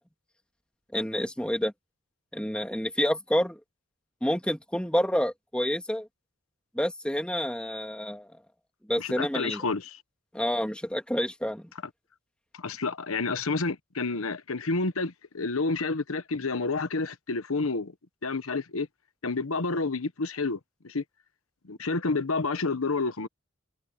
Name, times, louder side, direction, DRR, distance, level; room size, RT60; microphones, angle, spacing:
voice 1, 0.9-1.7 2.3-3.6 4.2-6.1 6.7-8.3 8.9-9.6 10.3-11.6, equal, 5° left, 2.3 m, -28 dB
voice 2, 9.0-10.0 12.6-17.9 18.2-18.9 19.2-20.6 20.8-21.0 21.6-23.3, left 3 dB, 85° left, 1.1 m, -29 dB
head